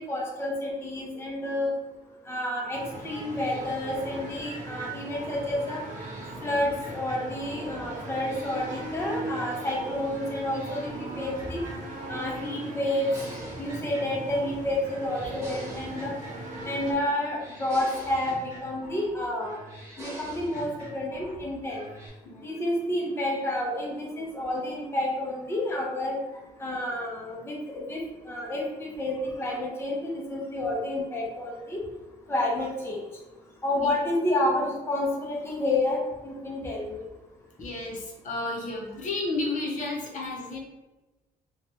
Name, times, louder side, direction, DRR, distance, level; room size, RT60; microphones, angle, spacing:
voice 1, 0.0-1.7 2.3-5.8 6.4-11.6 12.1-13.1 13.6-16.1 16.6-19.6 20.0-21.9 22.4-26.2 26.6-31.8 32.3-33.1 33.6-37.1, left 1 dB, 15° left, -2 dB, 0.5 m, -30 dB
sound 1, 2.7-16.9, right 2 dB, 55° right, 0.7 m, -39 dB
sound 2, 3.4-7.7 8.0-10.0 10.3-12.3 12.5-14.6 14.8-16.9 17.1-19.1 19.4-21.4 21.7-22.1, equal, 20° right, 1.1 m, -45 dB
voice 2, 37.6-40.6, left 2 dB, 55° left, -1 dB, 0.7 m, -32 dB
3.0 x 2.2 x 2.9 m, 1.1 s
cardioid pair, 135°, 15 cm